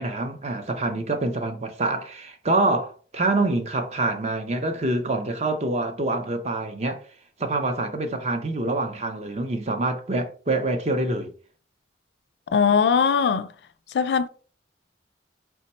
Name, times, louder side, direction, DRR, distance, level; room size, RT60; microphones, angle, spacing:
voice 1, 0.0-7.0 7.4-11.3, right 2 dB, 35° right, 0.5 m, -26 dB
voice 2, 12.5-13.5 13.9-14.3, left 6 dB, 65° left, 0.3 m, -20 dB
4.5 x 2.1 x 4.1 m
head